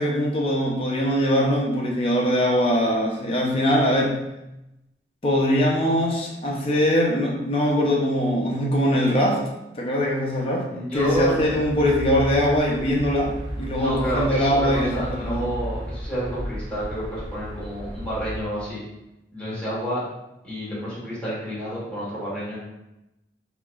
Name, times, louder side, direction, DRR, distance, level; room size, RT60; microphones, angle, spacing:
voice 1, 0.0-4.2 5.2-9.4 9.7-10.7 10.9-13.3 13.6-15.5, equal, 30° left, -2 dB, 0.6 m, -22 dB
voice 2, 10.7-11.6 13.7-18.8 19.3-20.0 20.4-22.6, right 1 dB, 5° left, -9 dB, 1.4 m, -29 dB
sound 1, 10.9-18.4, equal, 85° right, 0.8 m, -34 dB
4.2 x 2.9 x 2.4 m, 0.92 s
head